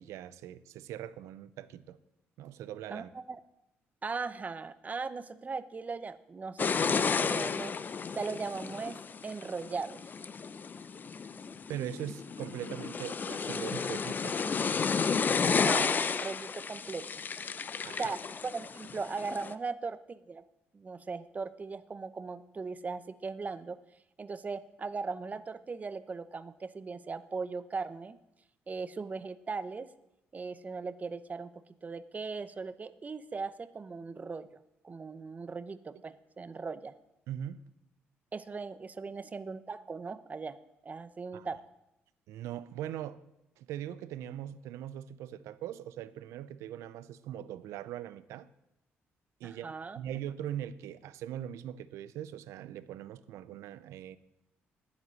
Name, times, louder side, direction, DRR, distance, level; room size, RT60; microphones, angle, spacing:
voice 1, 0.0-2.0 2.4-3.1 11.7-14.4 17.6-18.1 37.3-37.6 41.3-41.5 42.3-43.2 43.6-48.5 49.4-49.7 50.0-54.2, right 11 dB, 85° right, 15 dB, 0.6 m, -41 dB
voice 2, 4.0-7.8 8.1-10.0 15.5-17.1 18.0-18.2 18.4-20.4 20.7-23.8 24.2-28.2 28.7-29.9 30.3-31.5 31.8-34.5 34.8-36.9 38.3-40.6 40.8-41.6 49.4-50.0, right 4 dB, 35° right, 13 dB, 0.8 m, -38 dB
sound 1, 6.6-19.5, left 5 dB, 40° left, 0.6 m, -32 dB
9.7 x 9.6 x 7.6 m, 0.87 s
cardioid pair, 80°, 5 cm